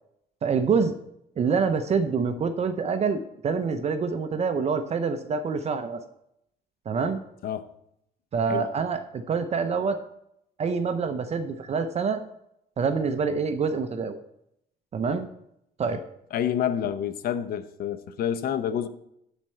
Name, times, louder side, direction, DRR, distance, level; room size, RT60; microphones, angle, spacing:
voice 1, 0.4-0.9 1.4-6.0 6.9-7.2 8.3-10.0 10.6-12.2 12.8-14.2 14.9-15.3 15.8-16.0, right 5 dB, 40° right, 0.8 m, -26 dB
voice 2, 16.3-18.9, left 9 dB, 60° left, 0.8 m, -28 dB
9.9 x 4.4 x 7.7 m
cardioid pair, 110°, 17 cm